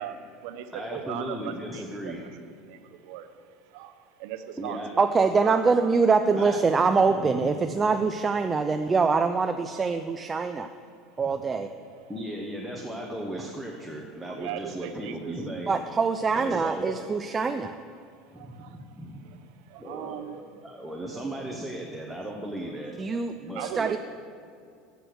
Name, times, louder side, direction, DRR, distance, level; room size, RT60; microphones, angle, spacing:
voice 1, 0.0-5.9 6.3-6.4 9.7-9.9 11.2-11.3 12.1-12.2 14.2-15.6 16.8-17.0 18.3-18.8 19.2-20.4 20.8-21.4 23.5-24.0, right 10 dB, 70° right, 10 dB, 0.7 m, -40 dB
voice 2, 0.7-2.2 4.6-4.9 6.3-6.6 7.1-7.8 12.1-15.8 16.3-16.8 18.3-19.3 19.8-22.9 23.4-23.7, right 1 dB, ahead, -1 dB, 0.9 m, -36 dB
voice 3, 5.0-10.7 11.2-11.7 15.7-17.8 23.0-23.3 23.6-24.0, right 4 dB, 20° right, 8 dB, 0.3 m, -24 dB
7.6 x 6.8 x 6.3 m, 2.4 s
supercardioid pair, 110°, 0 cm